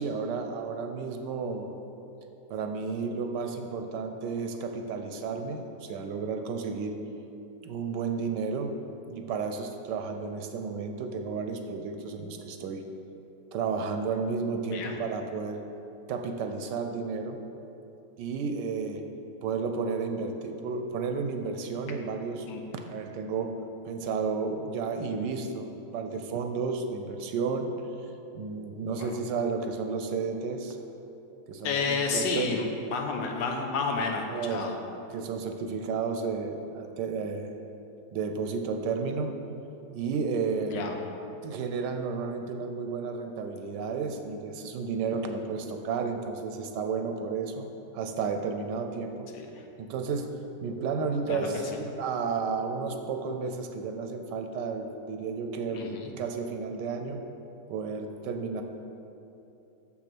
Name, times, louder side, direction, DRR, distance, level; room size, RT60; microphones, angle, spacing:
voice 1, 0.0-1.8 2.5-6.9 7.6-8.7 9.1-12.8 13.5-15.6 16.1-17.4 18.2-19.0 19.4-22.5 22.7-23.6 23.9-27.7 28.3-30.8 31.5-32.6 34.3-34.8 35.1-37.5 38.1-39.3 39.9-40.8 41.4-47.7 47.9-49.3 49.8-50.3 50.6-55.8 56.2-57.2 57.7-58.6, right 5 dB, 80° right, 6 dB, 1.2 m, -32 dB
voice 2, 31.6-34.8 40.6-41.0 49.3-49.6 51.3-51.6 55.7-56.1, left 4 dB, 85° left, 2 dB, 1.6 m, -31 dB
6.8 x 6.0 x 6.0 m, 2.9 s
omnidirectional pair, 1.9 m